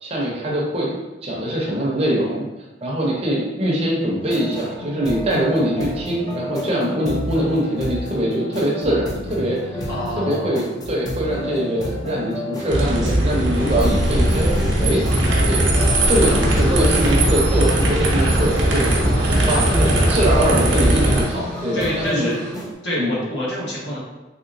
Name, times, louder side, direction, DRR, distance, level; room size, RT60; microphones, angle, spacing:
voice 1, 0.0-2.5 2.8-9.9 10.1-14.5 14.8-15.0 15.5-15.7 16.1-22.3 23.0-23.2, equal, 35° right, -4 dB, 0.7 m, -23 dB
sound 1, 4.2-22.7, left 1 dB, 20° left, 0.5 m, -30 dB
voice 2, 9.9-10.6 19.0-20.1 21.7-22.4 22.8-24.0, equal, 70° left, -6 dB, 1.2 m, -28 dB
sound 2, 12.7-21.2, right 1 dB, 75° right, 0.7 m, -19 dB
sound 3, 15.1-22.5, equal, 35° left, 1.1 m, -37 dB
3.2 x 2.9 x 2.6 m, 1.1 s
head